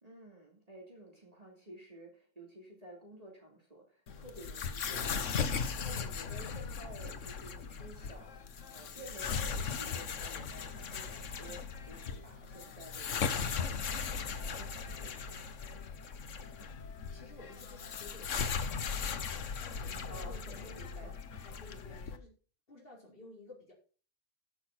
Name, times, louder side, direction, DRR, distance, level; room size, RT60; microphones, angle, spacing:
voice 1, 0.0-15.5 20.1-21.1 21.9-22.0, right 1 dB, 30° right, -1 dB, 2.9 m, -52 dB
sound 1, 4.1-22.2, left 6 dB, 75° left, 1.4 m, -38 dB
voice 2, 17.1-19.3 19.6-21.1 21.4-22.4 22.7-23.7, left 2 dB, 50° left, -4 dB, 4.6 m, -54 dB
13.5 x 6.5 x 5.9 m, 0.40 s
omnidirectional pair, 1.3 m